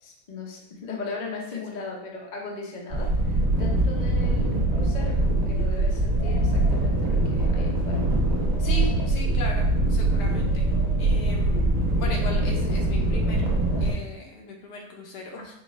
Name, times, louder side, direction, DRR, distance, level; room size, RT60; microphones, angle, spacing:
voice 1, 0.0-8.0 8.6-8.8, left 3 dB, 50° left, -1 dB, 0.5 m, -38 dB
sound 1, 2.9-13.9, right 2 dB, 45° right, 1.4 m, -23 dB
sound 2, 4.3-13.8, left 5 dB, 65° left, 1.0 m, -43 dB
voice 2, 8.6-10.7 11.0-13.4 13.8-15.6, left 2 dB, 80° left, 0 dB, 1.4 m, -37 dB
5.0 x 2.4 x 3.2 m, 0.82 s
omnidirectional pair, 1.8 m